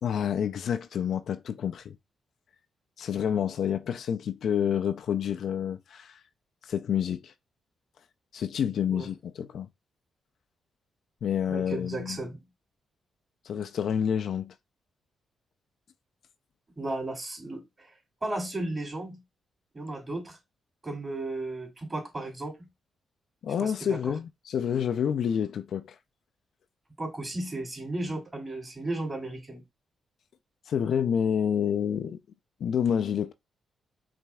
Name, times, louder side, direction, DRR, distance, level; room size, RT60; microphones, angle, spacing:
voice 1, 0.0-2.0 3.0-6.2 6.7-7.3 8.3-9.7 11.2-12.2 13.5-14.5 23.4-26.0 30.7-32.2 32.6-33.3, left 8 dB, 70° left, 0.4 m, -28 dB
voice 2, 11.5-12.4 16.8-17.9 18.2-19.2 19.7-20.4 20.8-22.7 23.6-24.1 27.0-29.6, right 2 dB, 30° right, 2.6 m, -34 dB
5.8 x 2.6 x 2.2 m
hypercardioid pair, 45°, 0 cm